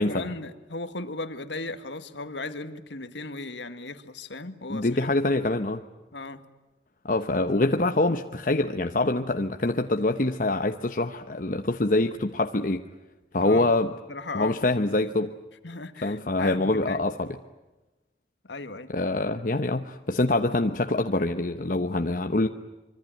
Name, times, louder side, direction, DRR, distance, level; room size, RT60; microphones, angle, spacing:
voice 1, 0.0-5.6 6.1-6.4 13.4-13.7 14.1-14.6 15.6-17.0 18.5-18.9, left 2 dB, 90° left, 9 dB, 1.9 m, -36 dB
voice 2, 4.7-5.8 7.0-12.8 13.3-13.9 14.3-15.3 16.0-17.4 18.9-22.5, left 2 dB, 50° left, 6 dB, 1.0 m, -25 dB
25.5 x 24.5 x 9.2 m, 1.1 s
head